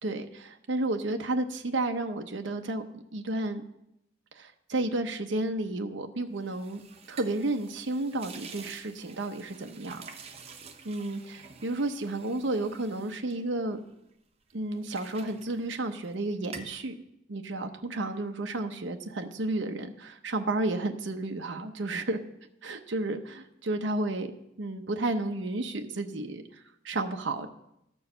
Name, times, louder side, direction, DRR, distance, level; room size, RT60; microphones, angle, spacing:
voice 1, 0.0-3.6 4.3-6.8 7.1-10.0 10.9-13.8 14.5-16.9 17.3-22.2 22.6-24.3 24.6-27.5, right 2 dB, 75° right, 5 dB, 0.8 m, -32 dB
sound 1, 6.4-14.1 14.5-16.2 16.4-16.8, right 5 dB, 30° right, 0.8 m, -49 dB
13.5 x 4.7 x 6.6 m, 0.81 s
head